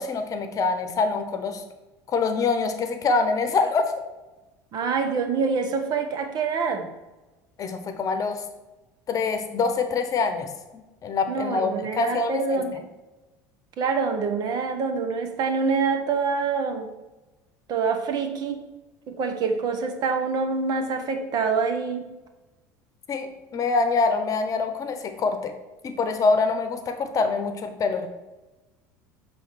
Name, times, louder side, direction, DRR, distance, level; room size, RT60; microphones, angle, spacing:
voice 1, 0.0-1.6 2.1-3.9 7.6-8.4 9.1-12.6 23.1-25.5 25.8-28.1, left 4 dB, 40° left, 8 dB, 0.9 m, -25 dB
voice 2, 4.7-6.9 11.3-12.9 13.8-16.9 17.7-18.6 19.1-22.1, right 5 dB, 50° right, 6 dB, 1.1 m, -26 dB
7.1 x 3.5 x 6.2 m, 1.1 s
supercardioid pair, 85°, 9 cm